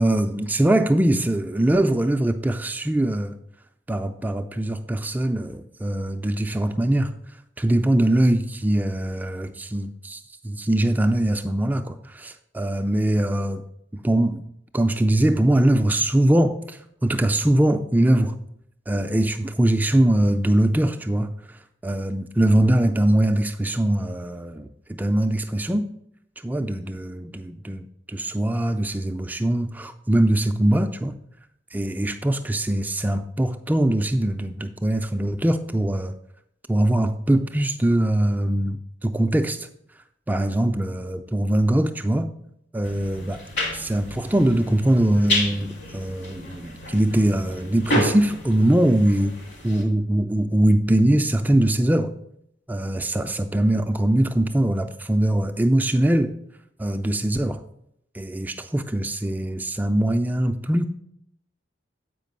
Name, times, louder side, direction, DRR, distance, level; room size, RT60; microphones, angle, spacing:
voice 1, 0.0-3.3 3.9-7.1 7.6-13.6 13.9-14.4 14.7-18.4 18.9-25.9 26.4-31.2 31.7-36.1 36.7-39.7 40.3-42.3 42.7-43.4 43.7-49.4 49.6-52.1 52.7-56.3 56.8-57.6 58.1-60.9, right 1 dB, 10° right, 6 dB, 0.3 m, -22 dB
sound 1, 42.8-49.8, equal, 70° left, 2.2 m, -30 dB
8.2 x 5.1 x 5.2 m, 0.74 s
head